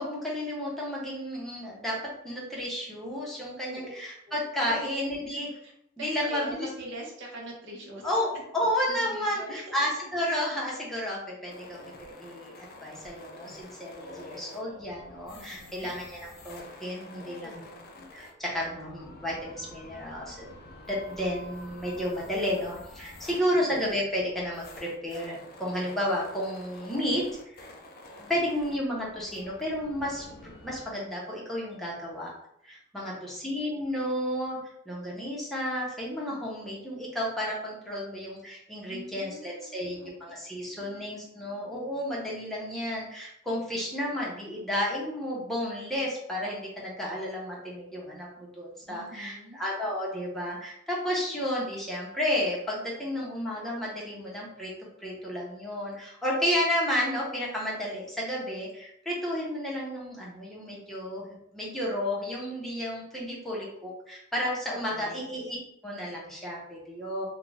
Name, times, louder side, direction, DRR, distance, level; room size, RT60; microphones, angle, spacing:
voice 1, 0.0-2.0 2.2-5.5 6.0-6.7 8.0-20.5 20.9-27.3 27.5-27.7 28.3-32.3 32.6-34.6 34.9-54.7 55.0-65.6 65.8-67.3, equal, ahead, -5 dB, 0.7 m, -32 dB
voice 2, 4.3-4.9 5.3-5.7 6.0-8.4 8.9-9.8 15.3-15.9 23.3-23.4 33.0-33.6 38.9-40.1 40.6-41.1 48.9-49.6 64.7-65.3, equal, 60° right, -1 dB, 0.8 m, -44 dB
sound 1, 11.5-30.9, left 2 dB, 45° left, 0.4 m, -48 dB
2.4 x 2.2 x 3.2 m, 0.74 s
head